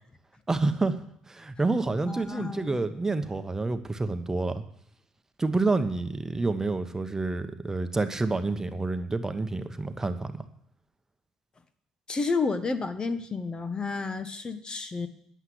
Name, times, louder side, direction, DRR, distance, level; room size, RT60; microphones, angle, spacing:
voice 1, 0.5-1.0 1.3-4.6 5.4-10.5, right 3 dB, 20° right, 9 dB, 1.1 m, -28 dB
voice 2, 2.0-2.8 12.1-15.1, left 4 dB, 35° left, 9 dB, 1.2 m, -31 dB
10.5 x 8.0 x 7.8 m, 0.66 s
hypercardioid pair, 55°, 3 cm